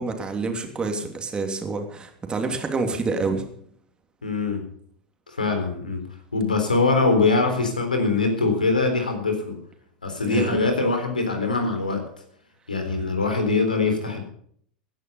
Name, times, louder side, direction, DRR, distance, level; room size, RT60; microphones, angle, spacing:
voice 1, 0.0-3.4 10.2-10.6, right 4 dB, 20° right, 4 dB, 3.0 m, -27 dB
voice 2, 4.2-4.6 5.3-6.0 6.3-9.6 10.0-12.0 12.7-14.2, left 3 dB, 85° left, 5 dB, 3.8 m, -22 dB
16.5 x 11.0 x 5.6 m, 0.62 s
figure-of-eight pair, 90°, 4 cm